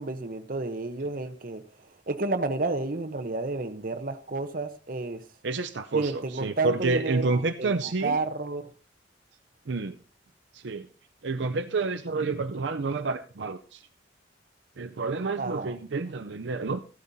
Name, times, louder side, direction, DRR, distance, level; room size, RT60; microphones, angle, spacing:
voice 1, 0.0-1.6 2.1-5.2 5.9-8.6 15.4-15.8, right 3 dB, 50° right, 0.8 m, -31 dB
voice 2, 5.4-8.2 9.7-10.0 10.5-10.9 11.2-13.8 14.8-16.8, right 3 dB, 70° right, 0.6 m, -29 dB
14.5 x 12.0 x 2.7 m
head